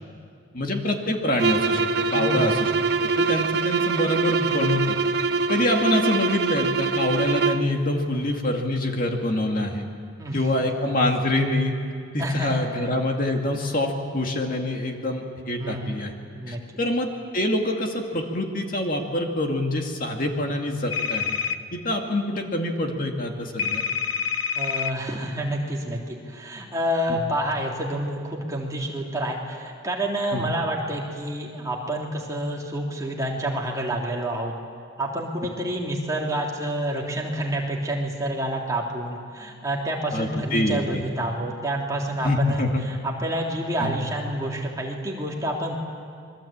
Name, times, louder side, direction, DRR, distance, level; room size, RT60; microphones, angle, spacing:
voice 1, 0.5-2.7 3.0-5.0 5.5-9.9 10.3-11.8 12.1-16.1 16.5-21.4 21.7-23.9 27.1-27.2 30.3-30.5 40.1-41.0 42.2-42.8 43.8-44.0, left 1 dB, 40° left, 2 dB, 2.3 m, -25 dB
sound 1, 1.3-7.7, right 4 dB, 55° right, 1.2 m, -24 dB
voice 2, 2.1-2.5 8.1-8.3 10.2-10.7 12.2-12.9 15.6-16.6 24.5-34.5 35.0-45.7, right 1 dB, 15° right, -2 dB, 3.2 m, -28 dB
sound 2, 20.9-21.6 23.6-24.9, left 7 dB, 75° left, 1.3 m, -26 dB
27.0 x 23.0 x 8.8 m, 2.2 s
head